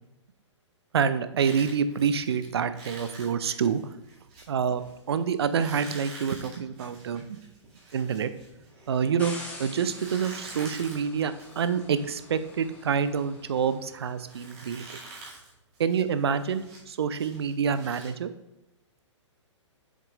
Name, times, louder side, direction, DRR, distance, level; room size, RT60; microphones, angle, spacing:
voice 1, 0.9-3.8 4.5-4.8 5.1-7.4 7.9-8.3 8.9-14.8 15.8-18.3, right 7 dB, 55° right, 12 dB, 0.5 m, -27 dB
sound 1, 1.4-9.3 9.8-18.1, right 2 dB, 30° right, 2.3 m, -47 dB
sound 2, 9.2-14.3, left 2 dB, 10° left, 1.2 m, -46 dB
7.4 x 6.9 x 2.5 m, 0.93 s
figure-of-eight pair, 120°, 16 cm